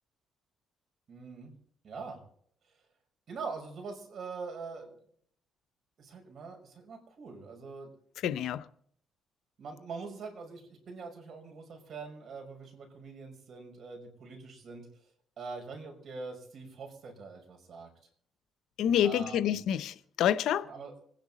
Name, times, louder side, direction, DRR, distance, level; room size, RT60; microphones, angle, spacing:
voice 1, 1.1-1.5 1.8-2.2 3.3-4.9 6.0-7.9 9.6-14.9 15.4-17.9 19.0-19.6 20.6-20.9, right 4 dB, 55° right, 5.9 m, -43 dB
voice 2, 8.2-8.6 18.8-20.7, left 10 dB, 80° left, 0.7 m, -28 dB
25.5 x 10.5 x 4.2 m
cardioid pair, 95°, 0 cm